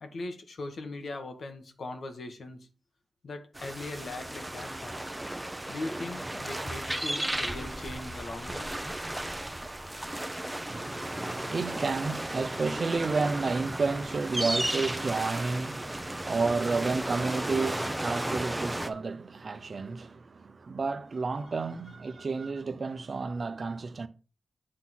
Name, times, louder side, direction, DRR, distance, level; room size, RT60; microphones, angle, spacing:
voice 1, 0.0-2.7 3.2-5.0 5.7-8.7 20.0-20.1, left 2 dB, 70° left, 1.6 m, -40 dB
sound 1, 3.5-18.9, right 1 dB, 10° right, 0.8 m, -34 dB
voice 2, 10.7-24.1, right 4 dB, 50° right, 0.8 m, -31 dB
8.7 x 3.9 x 6.2 m
wide cardioid pair, 130°, 0 cm